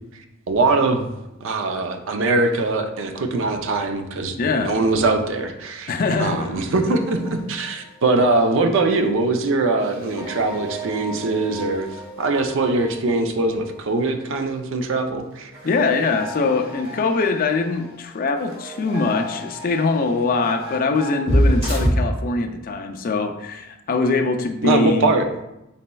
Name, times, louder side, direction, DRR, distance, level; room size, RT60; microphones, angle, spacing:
voice 1, 0.5-1.1 1.4-5.9 6.2-11.9 12.2-15.5 24.6-25.3, right 3 dB, 65° right, 6 dB, 0.5 m, -22 dB
voice 2, 4.4-4.7 5.9-6.6 15.6-25.1, left 3 dB, 45° left, 5 dB, 0.4 m, -22 dB
sound 1, 6.8-8.3 8.6-8.8 9.0-9.1 9.8-13.8 14.1-14.2 15.5-21.9, equal, 30° right, 1.4 m, -29 dB
4.1 x 4.0 x 2.2 m, 0.92 s
head